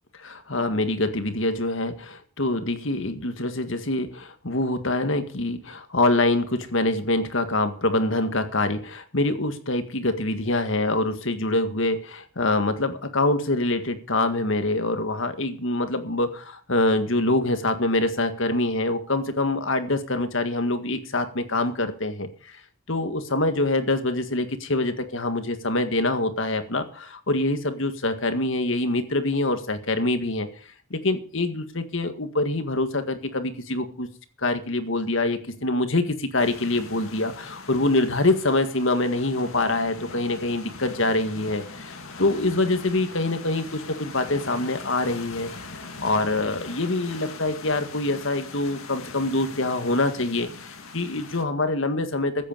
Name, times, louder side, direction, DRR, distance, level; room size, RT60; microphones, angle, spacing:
voice 1, 0.2-22.5 22.9-30.5 30.9-34.1 34.4-45.5 46.0-52.5, left 2 dB, 65° left, 9 dB, 1.8 m, -25 dB
sound 1, 36.4-51.4, left 4 dB, 80° left, 2.2 m, -41 dB
15.0 x 8.4 x 6.7 m, 0.42 s
head